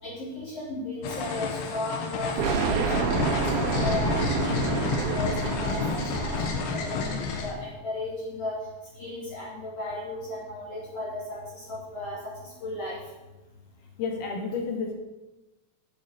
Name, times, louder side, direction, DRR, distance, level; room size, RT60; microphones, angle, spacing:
voice 1, 0.0-4.1 4.4-8.6 9.0-13.0, left 1 dB, 40° left, -5 dB, 3.5 m, -35 dB
sound 1, 1.0-7.5, left 5 dB, 85° left, 3.3 m, -30 dB
sound 2, 2.4-7.3, right 6 dB, 65° right, 2.8 m, -28 dB
voice 2, 14.0-14.9, left 5 dB, 60° left, 2 dB, 3.2 m, -30 dB
8.6 x 8.3 x 7.5 m, 1.1 s
omnidirectional pair, 4.4 m